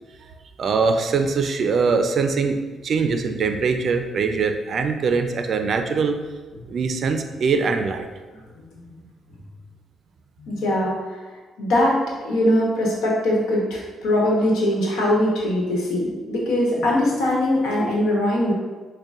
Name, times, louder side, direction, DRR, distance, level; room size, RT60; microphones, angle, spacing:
voice 1, 0.6-2.6 2.8-6.2 6.7-8.1, right 5 dB, 55° right, 6 dB, 0.4 m, -22 dB
voice 2, 10.4-10.9 11.6-12.0 12.2-18.5, left 1 dB, 85° left, -3 dB, 1.0 m, -21 dB
6.4 x 2.2 x 2.4 m, 1.3 s
cardioid pair, 90°, 0 cm